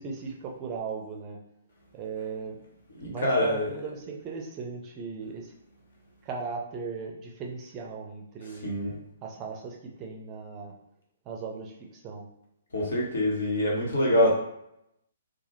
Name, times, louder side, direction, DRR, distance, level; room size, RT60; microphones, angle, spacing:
voice 1, 0.0-1.4 1.9-2.6 3.0-5.5 6.2-8.7 9.2-10.7 11.3-12.3, right 5 dB, 25° right, 0 dB, 0.4 m, -37 dB
voice 2, 3.0-3.8 8.5-9.0 12.7-14.3, left 1 dB, 60° left, -2 dB, 0.7 m, -25 dB
2.2 x 2.0 x 2.9 m, 0.77 s
figure-of-eight pair, 125°, 0 cm